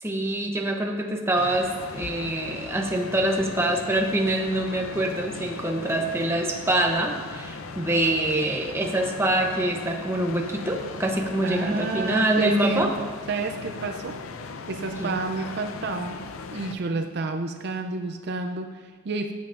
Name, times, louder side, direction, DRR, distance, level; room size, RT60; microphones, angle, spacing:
voice 1, 0.0-12.9 15.0-15.1, right 1 dB, 10° right, 1 dB, 0.7 m, -25 dB
sound 1, 1.4-16.7, left 4 dB, 65° left, 0.5 m, -39 dB
voice 2, 11.4-12.9 13.3-14.2 14.7-16.2 16.5-19.3, right 3 dB, 50° right, 6 dB, 0.4 m, -30 dB
15.0 x 7.8 x 2.5 m, 1.5 s
head